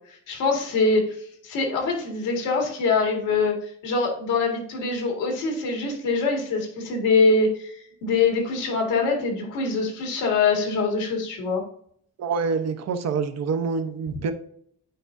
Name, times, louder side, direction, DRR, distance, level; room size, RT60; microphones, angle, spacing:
voice 1, 0.3-1.1 1.4-3.6 3.8-11.6, left 4 dB, 90° left, 1 dB, 1.9 m, -23 dB
voice 2, 12.2-14.3, right 5 dB, 60° right, 8 dB, 0.8 m, -26 dB
9.0 x 4.6 x 2.6 m, 0.64 s
cardioid pair, 90°, 30 cm